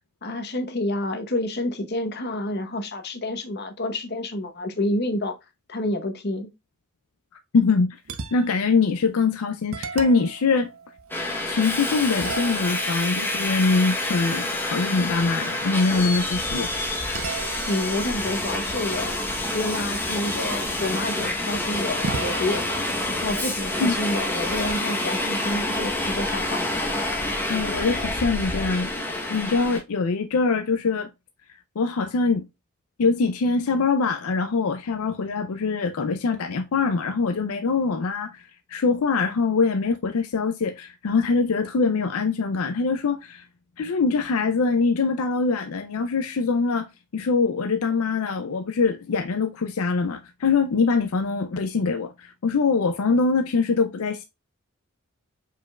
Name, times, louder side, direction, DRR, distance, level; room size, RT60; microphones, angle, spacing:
voice 1, 0.2-5.4 5.7-6.5 17.7-19.2 19.5-22.6 23.1-26.6, left 1 dB, 45° left, 1.0 m, -28 dB
voice 2, 7.5-8.0 8.3-10.7 11.5-16.7 23.8-24.0 27.5-31.1 31.8-32.4 33.0-38.4 38.7-43.4 43.8-54.2, left 4 dB, 75° left, 0.5 m, -23 dB
sound 1, 8.0-8.7 9.2-9.3 9.7-11.7 12.2-14.9 17.1-19.8 22.0-24.6, right 4 dB, 70° right, 0.7 m, -38 dB
Subway metro underground, 11.1-29.8, left 1 dB, 10° left, 0.9 m, -28 dB
5.1 x 4.5 x 2.3 m
head